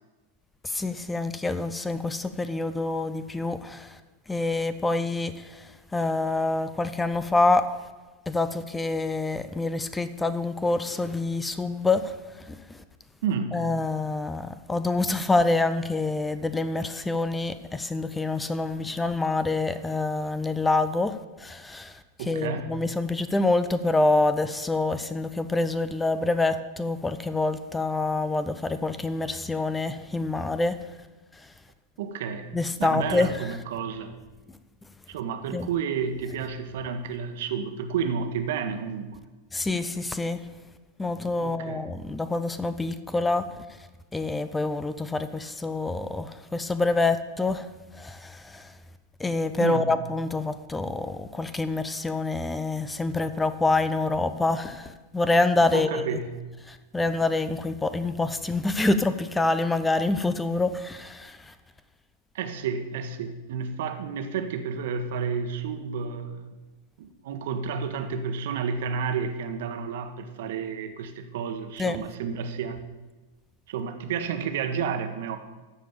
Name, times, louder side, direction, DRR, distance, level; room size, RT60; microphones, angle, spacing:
voice 1, 0.6-4.0 4.3-7.7 8.3-12.8 13.5-22.0 22.3-30.8 32.5-33.3 35.5-35.7 39.5-40.4 41.0-43.5 44.1-47.7 47.9-48.7 49.2-56.2 56.7-61.5 71.8-72.0, left 2 dB, 10° left, 12 dB, 0.6 m, -26 dB
voice 2, 13.2-13.6 22.2-22.7 32.0-32.5 32.8-34.1 35.1-39.2 41.4-41.9 49.6-49.9 55.7-56.3 62.3-66.5 67.0-72.8 73.7-75.4, right 6 dB, 55° right, 7 dB, 1.3 m, -31 dB
14.0 x 5.1 x 8.7 m, 1.2 s
figure-of-eight pair, 90°, 0 cm